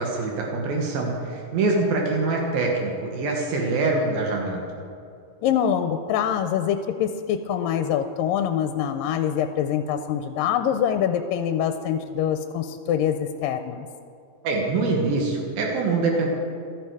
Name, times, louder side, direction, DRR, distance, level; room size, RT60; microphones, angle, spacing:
voice 1, 0.0-4.6 14.4-16.3, right 3 dB, 80° right, 0 dB, 3.3 m, -24 dB
voice 2, 5.4-13.9, left 9 dB, 80° left, 8 dB, 2.2 m, -24 dB
16.0 x 13.0 x 4.8 m, 2.6 s
omnidirectional pair, 4.1 m